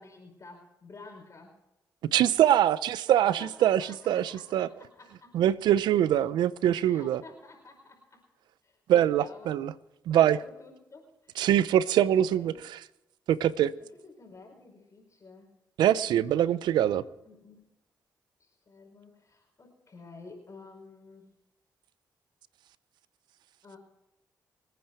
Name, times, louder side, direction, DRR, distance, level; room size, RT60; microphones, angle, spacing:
voice 1, 0.0-1.6 3.4-5.4 6.8-8.3 8.6-9.6 10.1-11.5 11.8-12.6 14.0-15.5 17.2-17.7 18.4-21.3 23.6-23.8, left 3 dB, 45° left, 5.0 m, -51 dB
voice 2, 2.1-4.7 5.3-7.2 8.9-9.7 10.1-10.4 11.4-12.5 13.3-13.7 15.8-17.0, right 11 dB, 85° right, 0.7 m, -23 dB
26.0 x 9.4 x 4.5 m
supercardioid pair, 55°, 7 cm